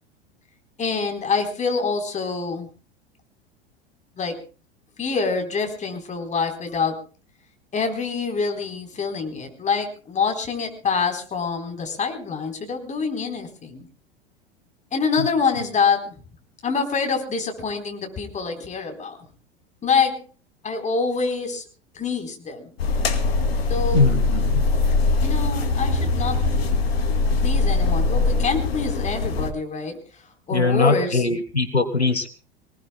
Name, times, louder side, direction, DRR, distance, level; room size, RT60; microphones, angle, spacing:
voice 1, 0.8-2.7 4.2-4.4 5.0-7.0 7.7-13.9 14.9-16.1 16.6-19.2 19.8-20.2 20.6-21.6 21.9-22.7 23.7-24.0 25.2-26.5 27.4-31.2, left 5 dB, 20° left, 4 dB, 4.0 m, -26 dB
sound 1, 22.8-29.5, left 3 dB, 70° left, 2.2 m, -22 dB
voice 2, 23.9-24.6 30.5-32.3, left 3 dB, 90° left, 11 dB, 1.3 m, -21 dB
25.5 x 19.0 x 2.3 m, 0.37 s
figure-of-eight pair, 85°, 32 cm